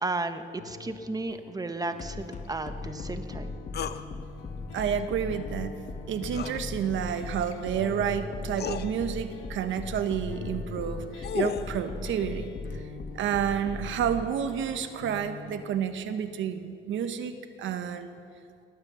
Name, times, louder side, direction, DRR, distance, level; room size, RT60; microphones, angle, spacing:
voice 1, 0.0-3.5, right 2 dB, 20° right, 9 dB, 1.0 m, -34 dB
sound 1, 0.6-15.8, left 5 dB, 80° left, 1.1 m, -46 dB
sound 2, 2.0-14.2, left 3 dB, 40° left, 1.4 m, -37 dB
sound 3, 3.7-4.0 6.3-6.6 7.9-8.0 8.5-8.9 10.8-11.7, left 8 dB, 55° left, 0.7 m, -33 dB
voice 2, 4.7-5.7 6.1-12.8 13.1-18.1, right 8 dB, 75° right, 9 dB, 1.1 m, -30 dB
19.0 x 9.0 x 6.9 m, 2.4 s
cardioid pair, 90°, 20 cm